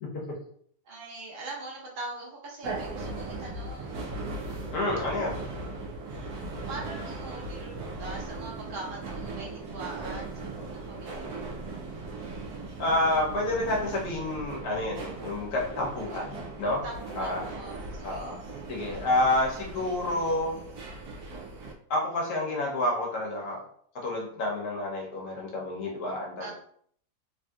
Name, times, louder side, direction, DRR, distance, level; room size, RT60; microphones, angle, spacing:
voice 1, 0.8-4.0 6.7-11.6 16.1-16.4 16.8-18.3 26.4-26.5, right 2 dB, 40° right, -3 dB, 0.9 m, -42 dB
sound 1, 2.6-21.7, right 3 dB, 85° right, 1.2 m, -38 dB
voice 2, 4.7-5.4 12.8-16.8 17.2-17.4 18.0-18.4 18.7-20.5 21.9-23.6 24.0-26.5, left 1 dB, 80° left, -2 dB, 1.4 m, -29 dB
3.3 x 2.7 x 2.3 m, 0.62 s
omnidirectional pair, 1.6 m